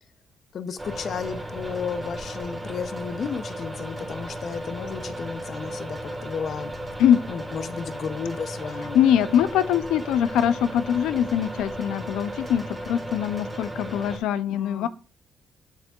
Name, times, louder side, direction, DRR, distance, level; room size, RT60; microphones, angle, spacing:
voice 1, 0.5-6.7 7.3-9.0 14.5-14.9, left 6 dB, 55° left, 0.7 m, -33 dB
sound 1, 0.8-14.2, right 1 dB, 15° right, 2.2 m, -35 dB
voice 2, 8.9-14.9, left 9 dB, 90° left, 0.5 m, -22 dB
8.1 x 6.6 x 2.4 m
cardioid pair, 90°, 0 cm